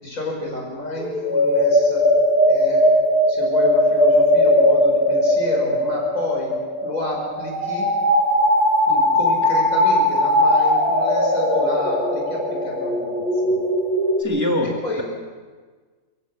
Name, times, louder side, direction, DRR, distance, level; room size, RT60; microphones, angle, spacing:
voice 1, 0.0-2.1 2.5-2.9 3.3-6.5 6.7-7.9 8.9-13.6 14.6-15.0, left 1 dB, 60° left, -1 dB, 6.0 m, -30 dB
sound 1, 0.9-14.2, left 1 dB, 40° left, 7.5 m, -19 dB
voice 2, 14.2-15.0, equal, 10° right, 1 dB, 1.6 m, -23 dB
24.0 x 15.0 x 7.1 m, 1.4 s
omnidirectional pair, 1.6 m